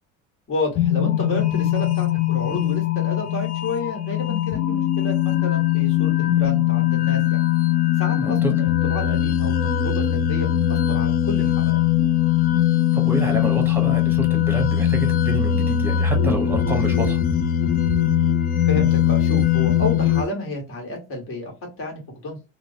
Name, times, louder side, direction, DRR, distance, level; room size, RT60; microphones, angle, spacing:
voice 1, 0.5-7.5 8.0-11.8 18.7-21.5 21.8-22.4, left 2 dB, 45° left, 1.3 m, -30 dB
sound 1, 0.8-20.2, left 11 dB, 30° left, 0.4 m, -20 dB
voice 2, 8.2-8.5 12.9-17.2, right 1 dB, 5° right, 1.0 m, -27 dB
3.0 x 2.0 x 2.6 m
cardioid pair, 120°, 30 cm